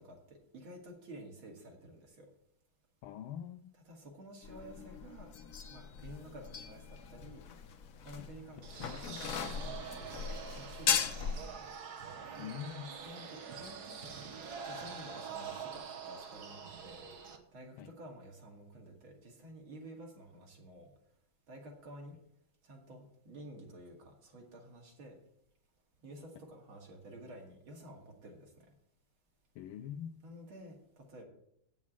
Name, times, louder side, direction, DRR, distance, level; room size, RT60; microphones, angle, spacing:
voice 1, 0.0-2.3 3.7-5.3 5.7-7.4 8.0-11.6 13.0-14.1 14.6-17.1 17.5-20.9 21.5-22.2 22.6-25.2 26.0-28.7 30.2-31.2, right 1 dB, 85° right, 0 dB, 3.1 m, -51 dB
voice 2, 3.0-3.7 12.4-12.9 17.8-17.9 29.6-30.2, left 9 dB, 85° left, 6 dB, 1.4 m, -43 dB
sound 1, 4.4-11.5, left 7 dB, 60° left, 0.9 m, -38 dB
sound 2, 8.6-17.4, right 6 dB, 55° right, 1.5 m, -45 dB
8.3 x 7.3 x 7.3 m, 0.74 s
omnidirectional pair, 2.2 m